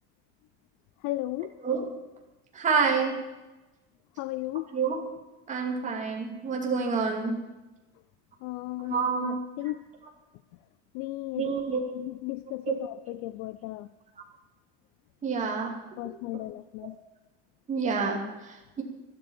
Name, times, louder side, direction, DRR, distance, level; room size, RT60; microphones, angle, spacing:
voice 1, 1.0-1.5 4.2-4.7 8.4-9.8 10.9-11.5 12.0-13.9 16.0-17.0, left 18 dB, 70° left, 14 dB, 0.6 m, -35 dB
voice 2, 2.5-3.2 4.7-5.0 5.5-7.4 8.9-9.4 11.4-11.8 12.6-12.8 15.2-15.8 17.7-18.8, right 5 dB, 25° right, 0 dB, 2.6 m, -28 dB
13.0 x 12.5 x 7.1 m, 1.1 s
cardioid pair, 170°, 31 cm